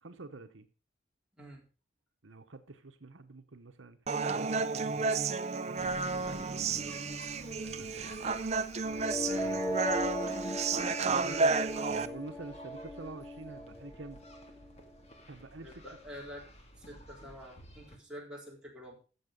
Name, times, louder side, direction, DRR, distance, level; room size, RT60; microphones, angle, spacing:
voice 1, 0.0-0.7 2.2-4.0 4.3-5.2 5.7-7.0 7.6-8.2 8.9-10.0 11.9-14.2 15.3-15.8, right 3 dB, 75° right, 1.1 m, -48 dB
Human voice, 4.1-12.1, right 4 dB, 35° right, 0.6 m, -32 dB
sound 1, 5.8-18.0, left 1 dB, 35° left, 2.0 m, -53 dB
sound 2, 8.8-14.8, equal, 15° left, 1.2 m, -37 dB
voice 2, 15.6-16.4 16.8-18.9, equal, 5° right, 4.0 m, -47 dB
14.0 x 7.4 x 5.4 m
head